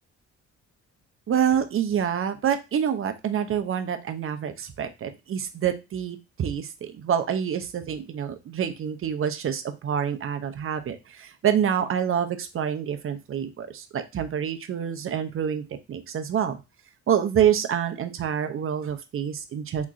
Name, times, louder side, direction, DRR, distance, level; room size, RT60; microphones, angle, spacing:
voice 1, 1.3-16.6 17.1-19.8, right 8 dB, 45° right, 8 dB, 0.6 m, -27 dB
3.5 x 3.0 x 2.5 m, 0.26 s
cardioid pair, 90°, 30 cm